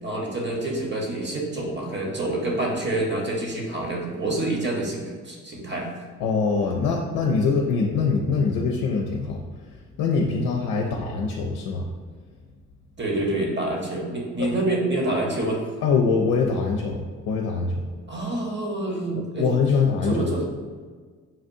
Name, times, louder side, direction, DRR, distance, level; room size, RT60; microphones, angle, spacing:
voice 1, 0.0-5.9 10.7-11.0 13.0-15.6 18.1-19.5 20.0-20.4, right 2 dB, 35° right, 0 dB, 1.1 m, -27 dB
voice 2, 6.2-9.4 10.0-11.9 14.4-14.5 15.8-17.9 19.4-20.3, left 4 dB, 70° left, 0 dB, 0.5 m, -23 dB
5.7 x 2.5 x 2.6 m, 1.5 s
hypercardioid pair, 50°, 33 cm